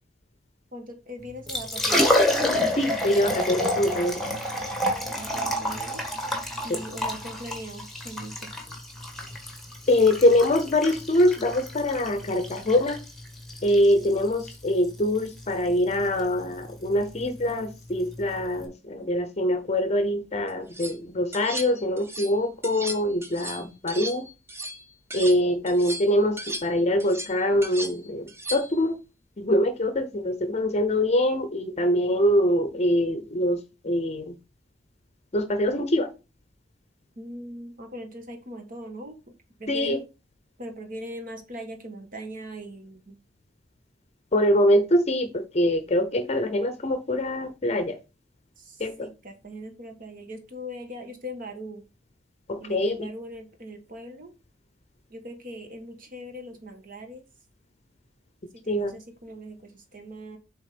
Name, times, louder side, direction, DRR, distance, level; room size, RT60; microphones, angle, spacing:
voice 1, 0.7-2.1 5.1-6.0 6.6-8.5 37.2-39.2 39.6-40.0 40.6-43.2 48.6-51.8 52.6-54.3 55.1-57.2 58.5-60.4, equal, 50° right, 4 dB, 1.4 m, -40 dB
Liquid, 1.3-18.6, left 1 dB, ahead, 1.5 m, -29 dB
voice 2, 2.8-4.2 6.7-6.8 9.9-13.0 13.6-24.3 25.1-29.0 29.4-34.4 35.3-36.1 39.7-40.0 44.3-48.0 48.8-49.1 52.5-53.1 58.7-59.0, left 1 dB, 35° left, 9 dB, 0.7 m, -24 dB
sound 1, 20.5-21.0 21.3-22.4 22.6-25.4 25.7-28.8, right 1 dB, 15° right, 0.8 m, -36 dB
7.4 x 3.6 x 5.0 m, 0.29 s
head